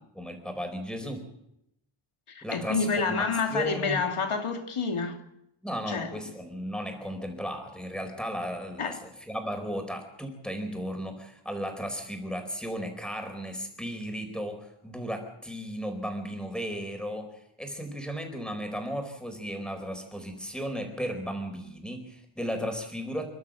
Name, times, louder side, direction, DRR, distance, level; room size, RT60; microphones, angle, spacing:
voice 1, 0.1-1.2 2.4-4.0 5.6-23.3, equal, ahead, 4.7 m, -35 dB
voice 2, 2.3-5.2 5.9-6.1 8.8-9.0, left 5 dB, 85° left, 2.7 m, -29 dB
28.5 x 12.0 x 7.7 m
wide cardioid pair, 110°, 49 cm